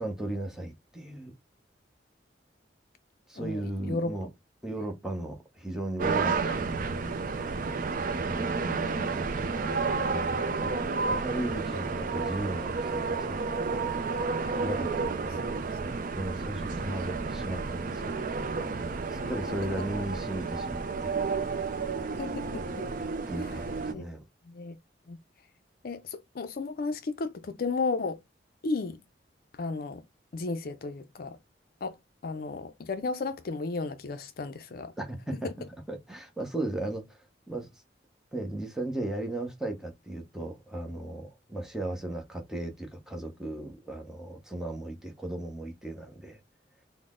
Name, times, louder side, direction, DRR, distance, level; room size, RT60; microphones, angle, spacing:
voice 1, 0.0-1.3 3.3-4.3 4.6-6.7 8.3-13.4 14.5-15.5 16.1-18.3 19.1-21.2 23.3-24.2 35.0-35.5 35.9-37.8 38.3-46.4, right 1 dB, 5° right, 0.8 m, -36 dB
voice 2, 3.4-4.1 6.5-6.6 8.6-9.1 15.3-15.4 22.2-22.9 23.9-24.1 24.4-24.8 25.1-25.2 25.8-28.2 28.6-29.0 29.5-30.0 30.3-31.4 31.8-31.9 32.2-34.9 35.4-35.5, left 3 dB, 55° left, 0.4 m, -34 dB
sound 1, 6.0-23.9, right 4 dB, 50° right, 0.5 m, -31 dB
3.9 x 2.1 x 3.6 m
head